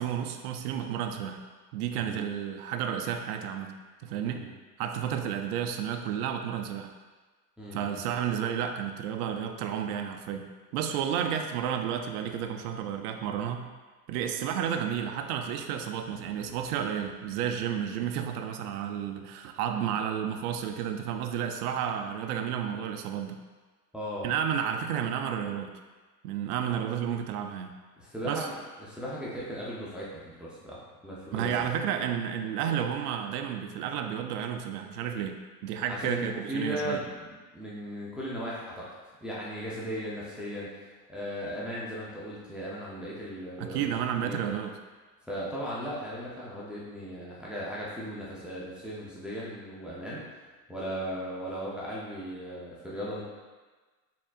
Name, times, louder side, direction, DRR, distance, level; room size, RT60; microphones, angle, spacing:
voice 1, 0.0-1.4 1.7-3.7 4.0-4.5 4.8-6.9 7.7-10.5 10.7-13.7 14.1-23.4 24.2-25.7 26.2-27.8 28.2-28.5 31.3-35.4 35.6-37.0 43.6-44.8, right 8 dB, 75° right, 5 dB, 0.5 m, -31 dB
voice 2, 7.6-8.1 23.9-24.3 28.0-28.5 28.8-31.5 35.9-38.9 39.2-44.4 45.3-50.2 50.7-53.2, equal, ahead, -7 dB, 0.7 m, -37 dB
4.2 x 3.7 x 2.4 m, 1.3 s
hypercardioid pair, 100°, 47 cm